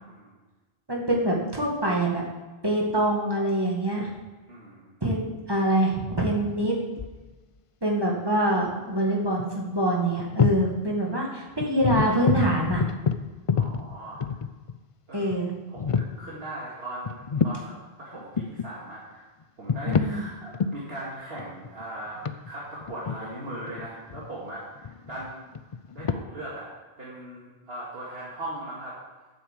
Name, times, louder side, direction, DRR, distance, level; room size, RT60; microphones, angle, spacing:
voice 1, 0.9-2.2 2.6-4.1 5.0-6.8 7.8-12.9 15.1-15.5 19.9-20.2, right 1 dB, 25° right, -2 dB, 2.1 m, -25 dB
voice 2, 4.5-4.9 13.5-14.2 15.1-15.3 15.7-19.3 19.6-25.5 25.9-26.7 27.0-29.0, right 1 dB, 75° right, -7 dB, 2.5 m, -39 dB
sound 1, 6.5-7.3 9.1-9.2 9.4-9.6 10.2-10.7 11.1-11.2 11.6-14.8 15.3-15.4 15.8-16.2 17.0-17.7 18.1-18.7 19.4-20.2 20.5-20.8 21.4-24.4 24.8-26.1, left 6 dB, 45° left, 0.5 m, -27 dB
9.2 x 7.8 x 7.6 m, 1.2 s
omnidirectional pair, 1.0 m